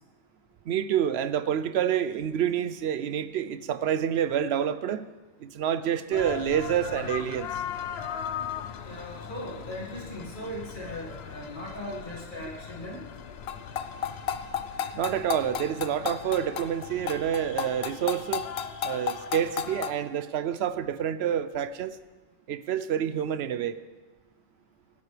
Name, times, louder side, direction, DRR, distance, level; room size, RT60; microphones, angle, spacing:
voice 1, 0.7-5.1 5.4-7.5 14.9-18.5 18.8-22.0 22.5-23.8, right 9 dB, 75° right, 14 dB, 0.8 m, -28 dB
sound 1, 6.1-19.9, left 8 dB, 70° left, 0.9 m, -36 dB
voice 2, 8.8-13.0, equal, 50° left, -4 dB, 2.1 m, -38 dB
17.5 x 12.0 x 3.3 m, 1.3 s
omnidirectional pair, 1.1 m